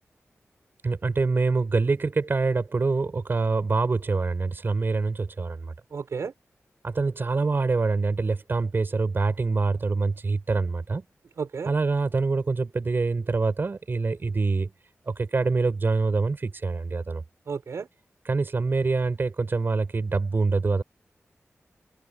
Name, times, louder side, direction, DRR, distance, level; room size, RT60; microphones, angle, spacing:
voice 1, 0.8-5.7 6.8-11.0 11.7-14.7 15.1-17.2 18.2-20.8, right 3 dB, 45° right, 5.8 m, -25 dB
voice 2, 5.9-6.3 11.4-11.7 17.5-17.9, right 5 dB, 80° right, 6.0 m, -32 dB
wide cardioid pair, 100°, 5 cm